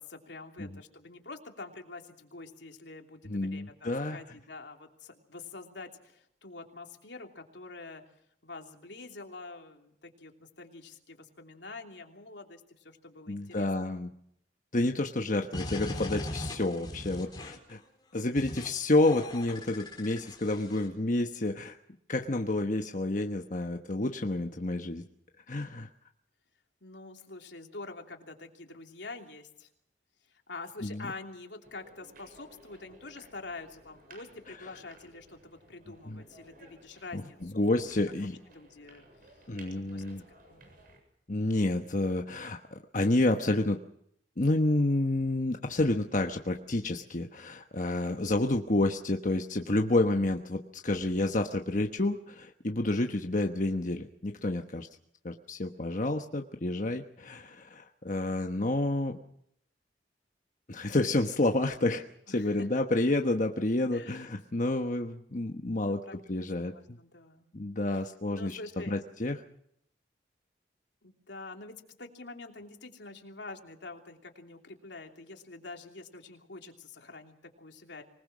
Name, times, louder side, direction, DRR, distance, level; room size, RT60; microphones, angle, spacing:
voice 1, 0.0-8.0 8.4-14.0 17.3-17.5 26.8-29.7 30.3-37.9 38.5-39.0 39.7-40.0 40.4-40.7 62.3-62.7 63.9-64.3 65.8-66.2 66.6-67.5 67.9-68.0 68.3-69.0 71.0-78.0, left 3 dB, 80° left, 3 dB, 3.1 m, -46 dB
voice 2, 3.2-4.2 13.3-14.1 14.7-17.8 18.1-21.8 22.1-25.0 25.5-25.9 30.8-31.1 36.1-36.2 37.1-38.4 39.5-40.2 41.3-43.8 44.4-54.9 55.2-59.2 60.7-67.0 67.5-69.4, left 2 dB, 45° left, 4 dB, 1.1 m, -29 dB
sound 1, 15.5-17.7 18.4-18.7 19.0-20.9, left 1 dB, 25° left, 3.9 m, -39 dB
sound 2, 31.6-41.0, right 2 dB, 50° right, 7.7 m, -57 dB
25.5 x 19.5 x 6.2 m, 0.72 s
head